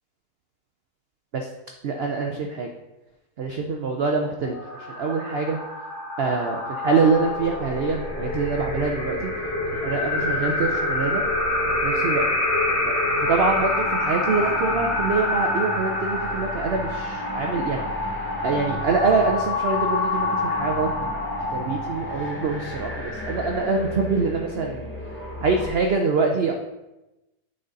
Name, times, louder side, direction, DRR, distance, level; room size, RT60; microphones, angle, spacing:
voice 1, 1.8-2.7 3.4-5.6 6.2-9.3 9.7-11.2 11.8-12.2 12.8-12.9 13.2-17.8 18.4-21.2 21.5-24.9 25.4-26.5, right 4 dB, 65° right, 3 dB, 0.6 m, -25 dB
sound 1, 4.4-21.8, left 2 dB, 10° right, 2.2 m, -28 dB
sound 2, 6.8-25.7, left 1 dB, 10° left, 1.1 m, -31 dB
8.9 x 4.0 x 3.9 m, 0.99 s
omnidirectional pair, 1.7 m